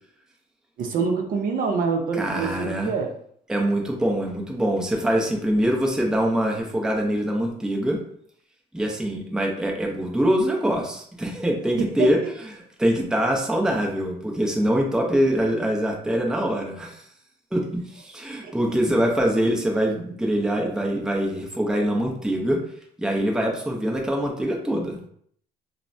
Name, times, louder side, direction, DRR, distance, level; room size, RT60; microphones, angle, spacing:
voice 1, 0.8-3.1 11.8-12.3 18.4-18.5, right 5 dB, 55° right, 3 dB, 0.5 m, -26 dB
voice 2, 2.2-2.9 3.5-8.0 8.7-12.2 12.8-17.0 17.5-22.6 23.0-25.0, equal, 5° right, 0 dB, 0.5 m, -24 dB
3.2 x 2.1 x 2.5 m, 0.64 s
cardioid pair, 110°, 17 cm